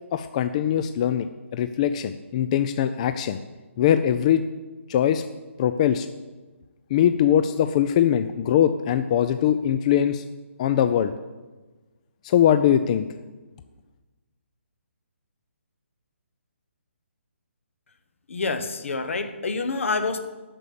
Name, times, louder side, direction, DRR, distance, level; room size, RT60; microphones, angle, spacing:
voice 1, 0.1-1.3 1.5-3.4 3.8-4.4 4.9-5.2 5.6-6.1 6.9-10.2 10.6-11.1 12.2-13.1, left 10 dB, 30° left, 10 dB, 0.4 m, -21 dB
voice 2, 18.3-20.2, left 3 dB, 70° left, 10 dB, 1.2 m, -27 dB
8.9 x 7.0 x 8.4 m, 1.2 s
hypercardioid pair, 150°, 7 cm